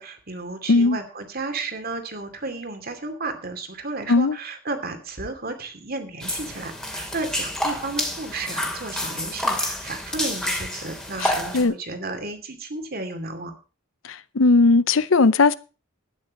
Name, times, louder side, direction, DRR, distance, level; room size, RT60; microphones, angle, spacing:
voice 1, 0.0-13.5, right 3 dB, 50° right, 2.6 m, -33 dB
sound 1, 6.2-11.6, left 1 dB, 5° left, 2.4 m, -29 dB
voice 2, 11.2-11.7 14.1-15.5, left 3 dB, 75° left, 0.7 m, -18 dB
12.0 x 9.8 x 5.3 m
head